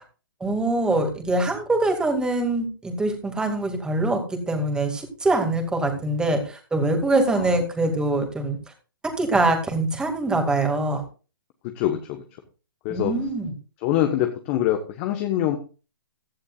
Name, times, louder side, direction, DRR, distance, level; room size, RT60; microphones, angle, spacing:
voice 1, 0.4-8.6 9.2-11.0 12.9-13.5, right 2 dB, 5° right, 4 dB, 2.3 m, -23 dB
voice 2, 11.7-12.2 12.8-13.2 13.8-15.6, left 12 dB, 30° left, 5 dB, 1.2 m, -24 dB
16.0 x 11.5 x 2.5 m, 0.35 s
hypercardioid pair, 135°, 11 cm